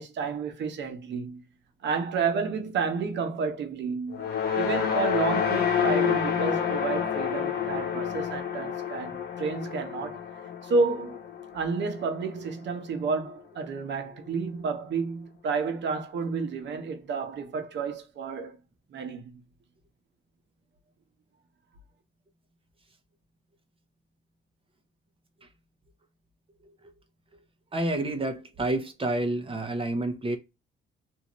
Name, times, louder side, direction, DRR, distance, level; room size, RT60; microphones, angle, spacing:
voice 1, 0.0-1.4 1.8-4.3 4.5-10.2 10.6-11.2 11.5-18.6 18.9-19.3, right 4 dB, 65° right, 0.9 m, -30 dB
sound 1, 4.1-12.5, left 8 dB, 55° left, 1.0 m, -29 dB
voice 2, 27.7-30.4, right 2 dB, 25° right, 0.9 m, -29 dB
2.8 x 2.4 x 2.9 m
cardioid pair, 90°, 20 cm